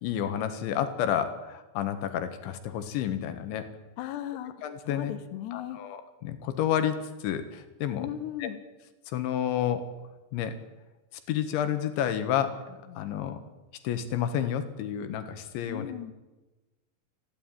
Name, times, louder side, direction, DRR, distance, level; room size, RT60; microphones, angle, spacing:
voice 1, 0.0-3.7 4.6-5.1 5.5-8.1 8.4-8.5 9.1-9.9 10.3-10.6 11.3-13.4 13.8-15.9, left 9 dB, 90° left, 10 dB, 3.9 m, -30 dB
voice 2, 4.0-4.5 4.9-5.8 8.0-8.6 15.7-16.1, left 12 dB, 70° left, 9 dB, 3.2 m, -36 dB
29.0 x 11.5 x 9.2 m, 1.1 s
omnidirectional pair, 5.2 m